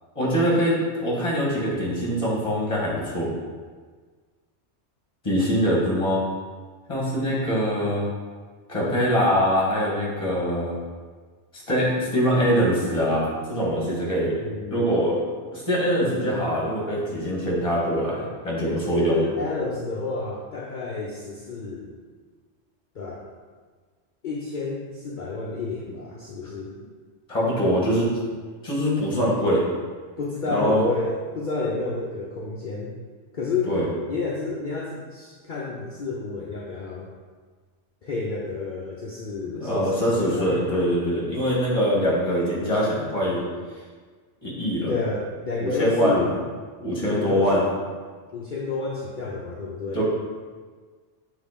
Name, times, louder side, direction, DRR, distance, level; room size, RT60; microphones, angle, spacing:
voice 1, 0.2-3.3 5.2-6.2 6.9-8.0 8.7-10.8 11.5-19.2 27.3-28.1 28.6-29.6 30.5-30.9 33.7-33.9 39.4-43.4 44.4-44.9 45.6-46.3 46.8-47.6 49.9-50.0, equal, 25° left, -5 dB, 1.8 m, -23 dB
voice 2, 14.4-15.0 18.9-21.9 22.9-23.2 24.2-26.7 30.2-32.9 33.3-33.7 34.1-37.1 38.0-40.6 44.9-46.3 47.0-47.7 48.3-50.0, left 3 dB, 50° left, -3 dB, 0.8 m, -30 dB
7.3 x 3.1 x 5.0 m, 1.5 s
omnidirectional pair, 1.2 m